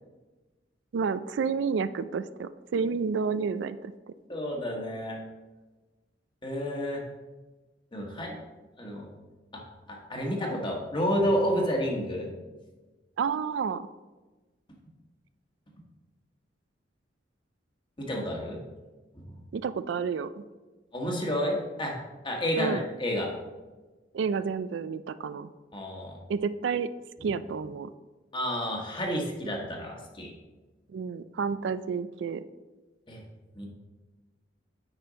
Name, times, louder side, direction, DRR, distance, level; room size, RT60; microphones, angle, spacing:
voice 1, 0.9-3.9 13.2-13.9 19.5-20.4 22.6-22.8 24.1-25.5 26.3-26.9 27.2-27.9 30.9-32.4, right 5 dB, 70° right, 13 dB, 0.3 m, -30 dB
voice 2, 4.3-5.2 6.4-7.0 7.9-8.4 8.8-9.1 9.5-9.6 9.9-12.3 18.0-18.6 19.1-19.2 20.9-21.9 22.2-23.3 25.7-26.2 28.3-30.3 33.1-33.2 33.5-33.7, equal, 25° left, 0 dB, 1.5 m, -30 dB
8.9 x 4.4 x 5.1 m, 1.2 s
head